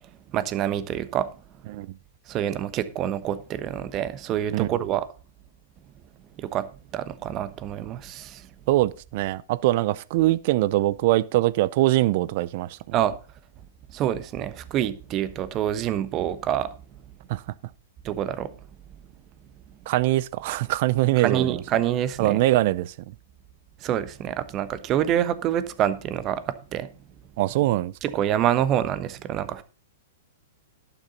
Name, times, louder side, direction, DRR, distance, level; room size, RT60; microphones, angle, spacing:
voice 1, 0.3-1.3 2.3-5.1 6.4-8.5 12.9-13.2 13.9-16.7 18.0-18.5 21.2-22.4 23.8-26.9 28.0-29.6, right 11 dB, 35° right, 1.1 m, -26 dB
voice 2, 8.7-12.8 17.3-17.4 19.9-21.6 22.2-22.9 27.4-27.9, right 17 dB, 50° right, 0.6 m, -22 dB
11.5 x 9.2 x 3.9 m
hypercardioid pair, 110°, 0 cm